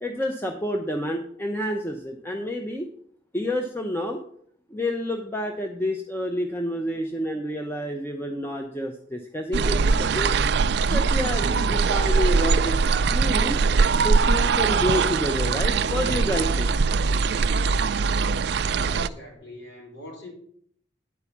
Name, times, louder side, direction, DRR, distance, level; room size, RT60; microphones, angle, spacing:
voice 1, 0.0-2.9 3.3-4.2 4.7-10.3 10.9-12.8 13.1-13.6 14.0-16.7, equal, 10° left, 3 dB, 0.6 m, -29 dB
sound 1, 9.5-19.1, right 4 dB, 60° right, 0.4 m, -22 dB
voice 2, 18.7-20.3, left 1 dB, 85° left, -4 dB, 4.6 m, -42 dB
9.9 x 4.8 x 7.0 m, 0.65 s
head